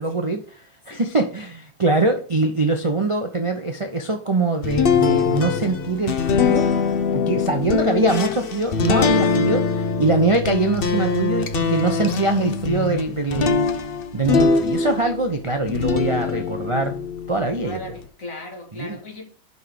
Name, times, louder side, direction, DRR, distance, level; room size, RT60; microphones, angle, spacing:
voice 1, 0.0-6.7 7.1-13.9 14.1-17.0 17.3-17.8 18.7-19.0, right 3 dB, 50° right, 0.3 m, -23 dB
sound 1, 4.6-15.2 15.7-18.0, left 5 dB, 65° left, 0.5 m, -22 dB
voice 2, 17.6-19.3, left 1 dB, 45° left, 2.3 m, -36 dB
5.6 x 5.4 x 6.3 m
omnidirectional pair, 2.0 m